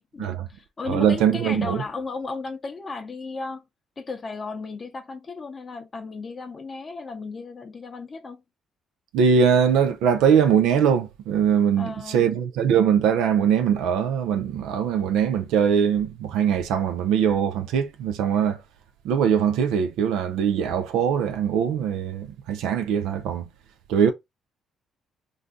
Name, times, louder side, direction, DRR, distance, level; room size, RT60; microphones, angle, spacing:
voice 1, 0.0-3.6 4.0-8.4 11.8-12.3, left 4 dB, 35° left, 0.6 m, -35 dB
voice 2, 0.9-1.8 9.1-18.6 19.0-23.5 23.9-24.1, right 7 dB, 80° right, 0.4 m, -21 dB
2.5 x 2.3 x 3.6 m
supercardioid pair, 65°, 0 cm